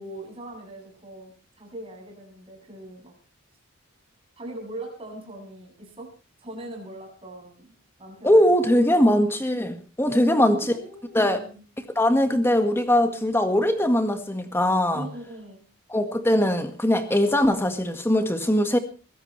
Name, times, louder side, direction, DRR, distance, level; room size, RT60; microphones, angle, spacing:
voice 1, 0.0-3.1 4.4-6.1 6.4-9.2 10.0-11.6 14.9-15.6, right 1 dB, 25° right, 8.0 m, -40 dB
voice 2, 8.2-10.7 11.1-11.4 12.0-15.1 15.9-18.8, left 1 dB, 10° left, 1.7 m, -21 dB
23.0 x 16.5 x 3.3 m
head